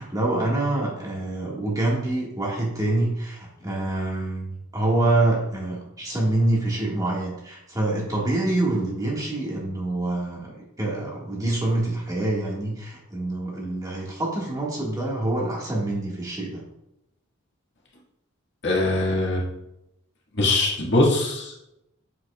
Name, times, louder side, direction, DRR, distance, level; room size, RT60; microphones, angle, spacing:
voice 1, 0.0-16.6, right 2 dB, 15° right, -4 dB, 1.8 m, -26 dB
voice 2, 18.6-19.4 20.4-21.6, left 2 dB, 55° left, -4 dB, 2.0 m, -22 dB
8.2 x 8.0 x 2.4 m, 0.86 s
head